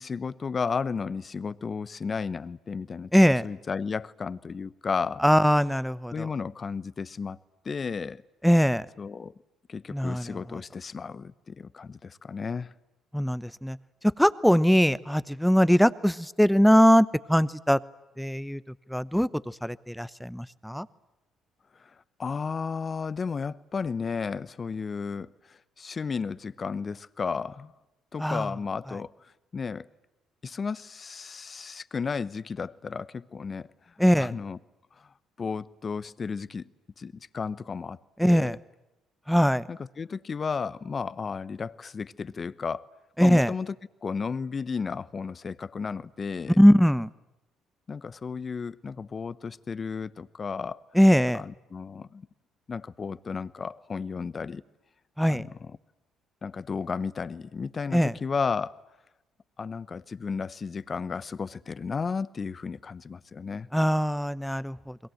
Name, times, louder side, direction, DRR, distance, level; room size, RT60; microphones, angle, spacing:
voice 1, 0.0-3.1 3.4-5.2 6.1-7.4 7.6-8.2 9.0-9.3 9.7-12.7 21.8-21.9 22.2-27.7 28.1-29.9 30.4-34.6 35.0-35.1 35.4-36.7 37.0-38.6 39.7-42.9 43.2-43.7 44.0-46.6 47.9-50.8 51.3-52.3 52.7-54.6 55.3-55.7 56.4-58.8 59.6-63.7, left 5 dB, 40° left, 0.9 m, -33 dB
voice 2, 3.1-3.5 5.2-6.3 8.4-8.9 9.9-10.6 13.1-13.8 14.0-17.8 18.2-18.6 18.9-20.9 28.2-28.5 34.0-34.3 38.2-38.6 39.3-39.6 43.2-43.5 46.5-47.1 50.9-51.4 55.2-55.5 57.9-58.1 63.7-65.0, equal, ahead, 0.9 m, -21 dB
30.0 x 22.0 x 7.8 m
hypercardioid pair, 60°, 0 cm